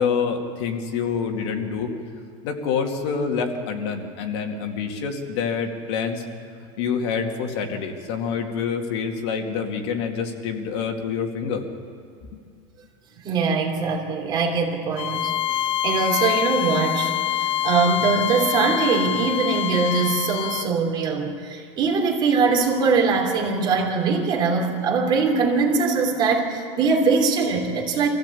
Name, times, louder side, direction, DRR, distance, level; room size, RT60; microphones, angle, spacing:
voice 1, 0.0-1.9 2.4-6.2 6.8-11.6 12.3-12.4, left 6 dB, 65° left, 3 dB, 2.3 m, -26 dB
voice 2, 13.2-28.1, right 4 dB, 30° right, 1 dB, 3.1 m, -22 dB
Bowed string instrument, 15.0-20.7, left 12 dB, 80° left, 0.8 m, -25 dB
25.0 x 15.5 x 8.5 m, 2.3 s
supercardioid pair, 170°, 15 cm